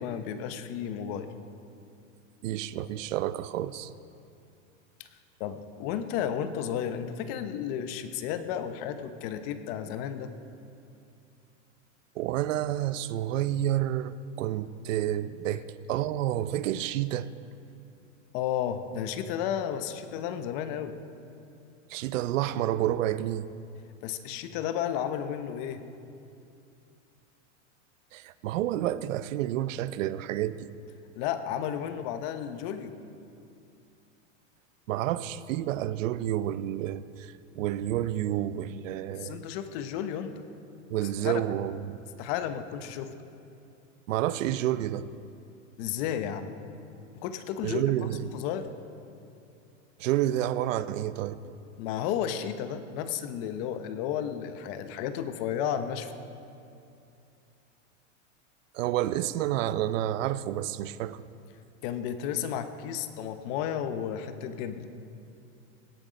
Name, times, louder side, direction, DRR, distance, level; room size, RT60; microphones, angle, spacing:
voice 1, 0.0-1.3 5.0-5.1 5.4-10.3 18.3-21.0 24.0-25.8 31.2-33.0 39.1-40.4 41.2-41.4 42.2-43.2 45.8-46.6 47.1-47.8 48.2-48.7 51.8-56.1 61.8-64.8, left 9 dB, 50° left, 10 dB, 1.0 m, -33 dB
voice 2, 2.4-3.9 12.2-17.3 21.9-23.5 28.1-30.7 34.9-39.4 40.9-42.0 44.1-45.1 47.6-48.3 50.0-51.4 58.7-61.2, right 12 dB, 80° right, 15 dB, 0.7 m, -29 dB
17.5 x 10.5 x 5.1 m, 2.6 s
supercardioid pair, 135°, 38 cm